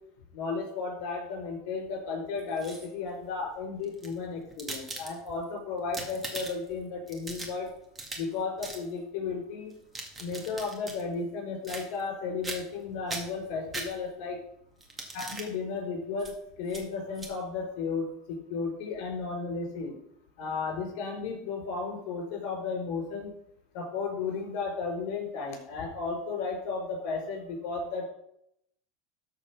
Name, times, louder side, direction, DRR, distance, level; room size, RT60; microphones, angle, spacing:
voice 1, 0.3-7.7 8.1-9.7 10.2-14.4 15.1-16.3 16.6-20.0 20.4-23.3 23.7-28.1, left 4 dB, 65° left, 1 dB, 4.7 m, -34 dB
sound 1, 2.4-3.1 3.8-5.4 5.8-6.7 7.1-8.3 8.6-8.8 9.7-11.0 11.6-12.1 12.4-12.8 13.1-14.3 14.8-15.5 16.2-16.3 16.7-16.8 17.1-17.3, right 2 dB, 15° right, 1.9 m, -40 dB
13.0 x 4.4 x 5.9 m, 0.74 s
supercardioid pair, 140°, 0 cm